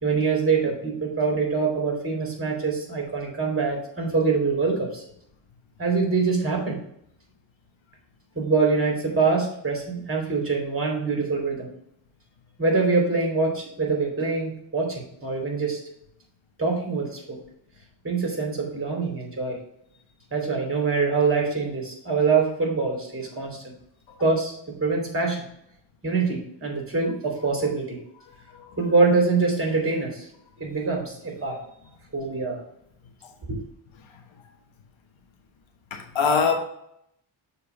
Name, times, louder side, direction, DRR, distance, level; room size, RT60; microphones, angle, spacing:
voice 1, 0.0-5.0 5.8-6.8 8.3-11.7 12.6-15.8 16.6-17.4 18.0-19.6 20.3-23.7 24.2-25.4 26.0-28.0 28.8-30.3 30.6-31.6 32.1-32.6 33.5-33.6, right 4 dB, 25° right, 2.8 m, -24 dB
voice 2, 35.9-36.5, left 5 dB, 80° left, 1.3 m, -23 dB
7.0 x 3.4 x 5.9 m
cardioid pair, 95°, 47 cm